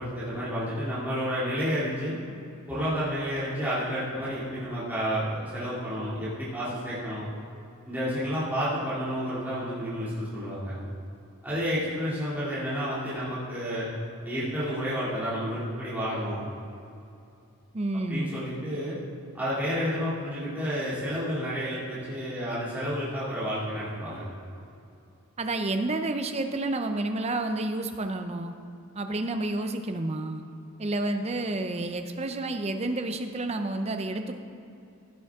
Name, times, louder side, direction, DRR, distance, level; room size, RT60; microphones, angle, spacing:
voice 1, 0.0-2.1 2.7-7.2 7.9-10.7 11.4-13.9 14.2-16.4 18.1-18.9 19.3-24.2, equal, 10° right, -12 dB, 2.4 m, -30 dB
voice 2, 17.7-18.3 25.4-28.5 29.0-30.4 30.8-34.4, right 2 dB, 30° right, 6 dB, 0.5 m, -30 dB
15.5 x 7.0 x 3.6 m, 2.7 s
head